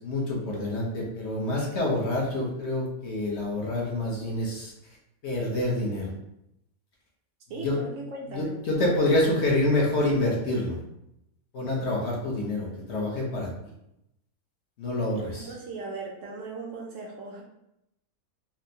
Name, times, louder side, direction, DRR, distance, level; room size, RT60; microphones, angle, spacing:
voice 1, 0.0-4.7 5.2-6.1 7.6-7.8 8.3-10.8 11.5-13.5 14.8-15.5, left 1 dB, 55° left, -3 dB, 0.9 m, -27 dB
voice 2, 7.5-9.5 15.4-17.4, right 3 dB, 70° right, -1 dB, 0.9 m, -39 dB
4.2 x 2.0 x 2.7 m, 0.84 s
omnidirectional pair, 1.5 m